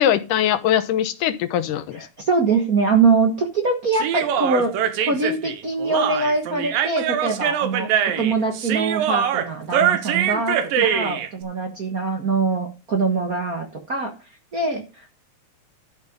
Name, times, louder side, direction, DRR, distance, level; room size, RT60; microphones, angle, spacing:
voice 1, 0.0-2.0 10.8-10.9, left 10 dB, 70° left, 11 dB, 2.4 m, -21 dB
voice 2, 1.9-4.7 5.1-7.9 8.2-14.1 14.5-15.1, right 4 dB, 60° right, 4 dB, 0.9 m, -23 dB
Human voice, 3.9-11.3, right 9 dB, 80° right, 2.8 m, -23 dB
12.5 x 5.7 x 5.2 m, 0.30 s
omnidirectional pair, 4.0 m